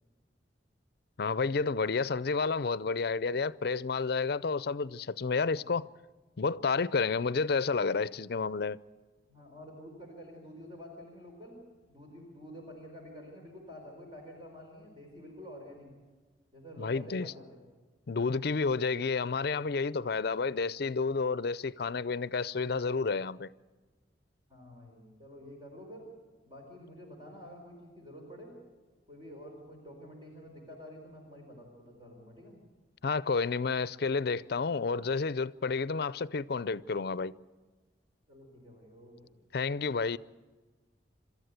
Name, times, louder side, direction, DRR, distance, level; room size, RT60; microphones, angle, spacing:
voice 1, 1.2-5.9 6.4-8.8 16.8-17.3 18.1-23.5 33.0-37.3 39.5-40.2, left 4 dB, 60° left, 0.5 m, -30 dB
voice 2, 9.3-11.6 11.9-15.9 16.5-17.6 24.5-26.0 26.5-28.5 29.1-32.6 38.3-39.3, equal, 25° right, 4.4 m, -49 dB
26.5 x 13.5 x 8.2 m
head